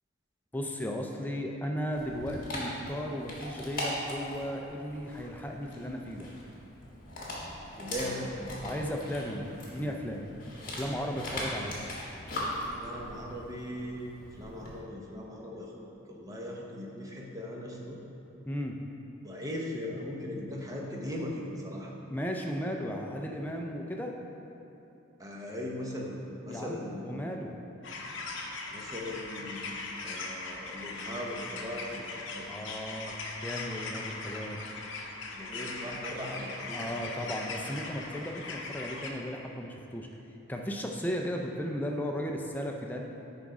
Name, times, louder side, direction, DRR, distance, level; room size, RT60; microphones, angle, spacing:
voice 1, 0.5-6.3 8.6-10.3 10.7-11.8 18.5-18.8 22.1-24.1 26.5-27.5 32.5-33.2 33.4-34.6 36.6-40.1 40.5-43.1, equal, 10° left, 1 dB, 0.4 m, -35 dB
Dog, 1.9-14.8, left 1 dB, 40° left, 1.6 m, -40 dB
voice 2, 7.8-8.4 12.6-15.7 16.1-18.0 19.2-21.9 25.2-26.2 26.4-27.1 28.7-29.7 30.0-32.5 35.3-36.8, left 1 dB, 15° right, -2 dB, 0.8 m, -39 dB
sound 1, 27.8-39.1, left 3 dB, 60° left, 0.7 m, -40 dB
10.0 x 3.6 x 5.0 m, 3.0 s
head